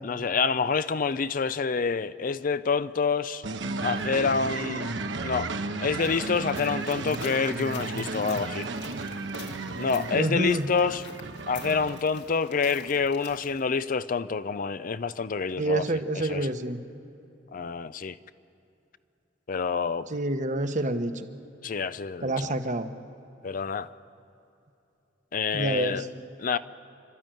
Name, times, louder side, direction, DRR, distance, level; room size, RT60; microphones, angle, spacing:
voice 1, 0.0-3.4 3.8-4.9 5.2-5.5 5.8-8.7 9.8-11.1 11.5-15.9 16.2-16.5 17.5-18.2 19.5-20.1 21.6-22.5 23.4-23.9 25.3-26.0 26.4-26.6, left 5 dB, 50° left, 14 dB, 0.5 m, -27 dB
sound 1, 3.4-12.0, right 3 dB, 85° right, 1.1 m, -34 dB
sound 2, 6.0-13.6, left 4 dB, 70° left, 2.2 m, -47 dB
voice 2, 10.1-10.7 15.6-16.8 20.1-21.1 22.2-22.9 25.5-26.0, right 2 dB, 45° right, 8 dB, 1.1 m, -27 dB
29.5 x 12.5 x 9.1 m, 2.8 s
head